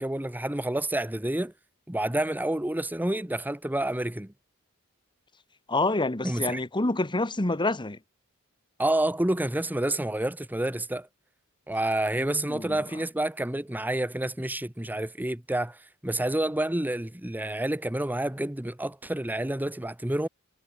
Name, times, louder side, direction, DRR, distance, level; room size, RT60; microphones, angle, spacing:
voice 1, 0.0-1.5 1.9-4.3 6.2-6.6 8.8-11.1 11.7-20.3, right 1 dB, 10° right, 0.9 m, -29 dB
voice 2, 5.7-8.0 12.2-12.8, left 2 dB, 20° left, 1.4 m, -27 dB
head